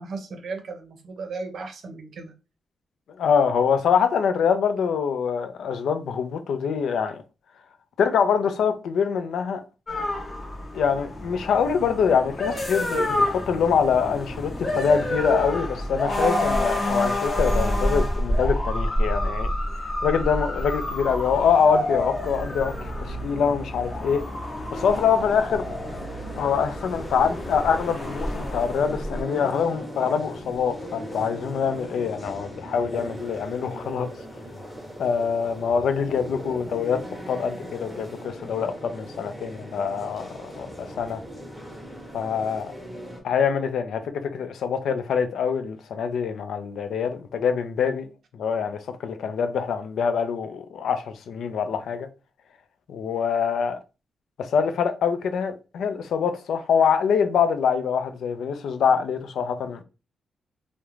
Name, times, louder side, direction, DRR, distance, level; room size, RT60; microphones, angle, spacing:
voice 1, 0.0-2.3, right 4 dB, 70° right, 0.6 m, -35 dB
voice 2, 3.2-7.2 8.0-9.6 10.7-19.5 20.0-24.2 24.7-25.6 26.3-34.1 35.0-41.2 42.1-42.7 43.2-52.1 52.9-53.8 54.4-59.8, left 6 dB, 85° left, 0.3 m, -24 dB
sound 1, 9.9-29.2, left 1 dB, 35° left, 0.6 m, -28 dB
sound 2, 24.7-43.2, equal, 5° left, 0.8 m, -39 dB
sound 3, 32.9-38.3, right 2 dB, 25° right, 0.4 m, -44 dB
2.4 x 2.1 x 3.0 m
cardioid pair, 90°, 0 cm